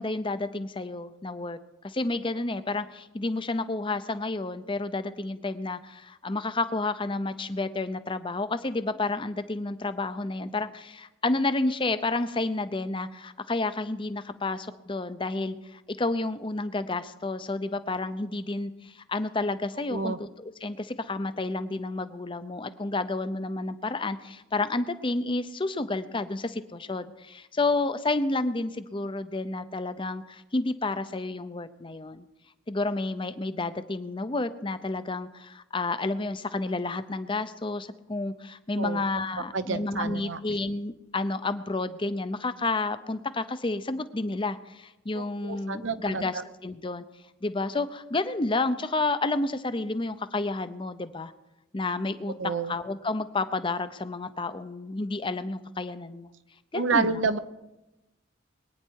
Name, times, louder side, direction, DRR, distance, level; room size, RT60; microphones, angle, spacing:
voice 1, 0.0-1.6 1.8-32.3 32.7-47.0 47.4-51.3 51.7-52.3 52.7-56.3 56.7-57.2, left 2 dB, 25° left, 12 dB, 0.7 m, -30 dB
voice 2, 39.5-40.4 45.1-46.4 52.4-52.7 56.7-57.4, right 4 dB, 70° right, 11 dB, 0.8 m, -29 dB
22.5 x 9.5 x 4.7 m, 1.0 s
head